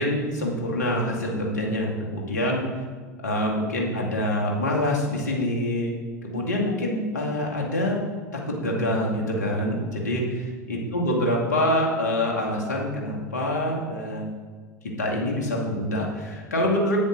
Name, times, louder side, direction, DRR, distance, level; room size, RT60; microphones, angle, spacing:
voice 1, 0.0-2.6 3.2-5.9 6.2-8.0 8.5-14.3 15.0-17.0, left 1 dB, 75° left, -1 dB, 2.1 m, -25 dB
10.0 x 9.1 x 3.9 m, 1.5 s
figure-of-eight pair, 80°, 9 cm